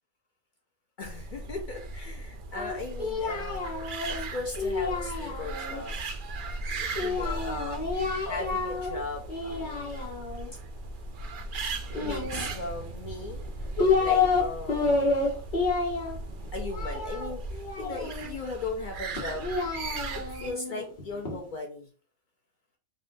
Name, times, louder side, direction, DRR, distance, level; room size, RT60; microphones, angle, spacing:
voice 1, 1.0-6.0 6.8-7.8 8.3-10.1 11.9-13.4 14.0-15.4 16.5-19.5 20.4-21.9, left 2 dB, 65° left, 1 dB, 0.4 m, -38 dB
sound 1, 1.0-20.5, right 2 dB, 75° right, 0.4 m, -38 dB
Singing, 2.5-5.8 6.9-9.0 9.3-10.5 11.9-12.9 13.4-14.4 14.7-18.3 19.1-21.4, left 4 dB, 45° left, 0.9 m, -29 dB
3.6 x 2.1 x 2.6 m, 0.40 s
omnidirectional pair, 1.4 m